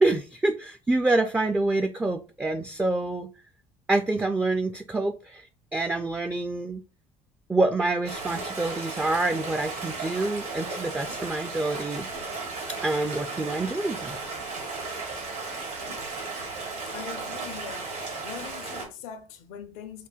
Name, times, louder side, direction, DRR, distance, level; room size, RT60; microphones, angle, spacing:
voice 1, 0.0-3.3 3.9-6.8 7.5-12.1 12.8-14.4, right 2 dB, 10° right, 0.3 m, -27 dB
Stream, 8.1-18.9, right 3 dB, 80° right, 1.8 m, -35 dB
voice 2, 16.9-17.9 18.2-20.1, left 8 dB, 70° left, 0.6 m, -41 dB
5.6 x 2.2 x 2.4 m
hypercardioid pair, 60°, 19 cm